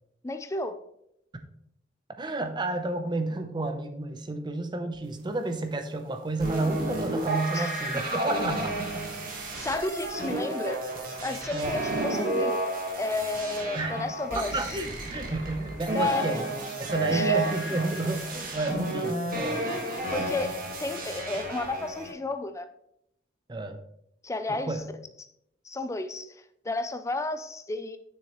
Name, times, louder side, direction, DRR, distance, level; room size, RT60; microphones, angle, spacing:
voice 1, 0.2-0.8 7.5-8.0 9.6-10.8 11.2-12.6 13.0-14.8 15.9-16.3 17.1-17.8 20.1-22.7 24.2-24.8 25.2-25.3 25.6-28.0, left 2 dB, 15° left, 9 dB, 0.4 m, -32 dB
voice 2, 2.2-9.1 11.5-11.7 13.7-14.0 14.4-16.4 16.8-19.7 23.5-23.8 24.7-24.8, right 2 dB, 25° right, 7 dB, 0.7 m, -31 dB
sound 1, 6.4-22.1, right 2 dB, 50° right, 1.6 m, -31 dB
6.9 x 6.4 x 3.0 m, 0.75 s
head